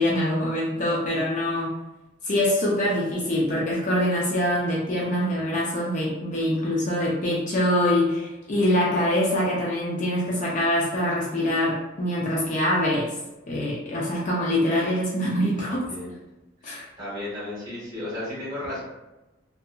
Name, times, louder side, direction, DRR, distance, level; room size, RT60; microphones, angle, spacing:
voice 1, 0.0-1.8 2.2-13.1 13.5-15.8 16.6-16.8, left 1 dB, 40° left, -4 dB, 0.4 m, -24 dB
voice 2, 5.1-5.4 15.6-16.2 16.6-18.8, left 1 dB, 20° right, -9 dB, 1.3 m, -35 dB
2.7 x 2.4 x 2.2 m, 1.0 s
head